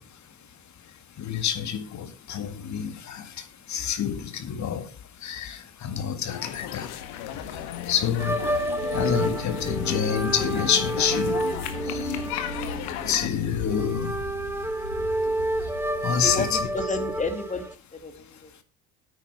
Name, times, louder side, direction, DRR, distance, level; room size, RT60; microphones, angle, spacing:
voice 1, 1.2-3.2 3.7-4.8 5.2-6.9 7.9-8.4 8.9-11.4 11.9-12.0 13.1-14.1 16.0-16.6, left 8 dB, 40° left, 2.0 m, -27 dB
sound 1, 6.3-13.3, left 12 dB, 60° left, 1.7 m, -35 dB
sound 2, 6.9-17.7, left 2 dB, 90° left, 2.0 m, -40 dB
sound 3, 8.2-17.7, right 1 dB, 5° right, 1.0 m, -30 dB
voice 2, 16.2-17.7 17.9-18.5, left 2 dB, 15° left, 2.4 m, -31 dB
9.8 x 9.0 x 4.7 m
hypercardioid pair, 65°, 43 cm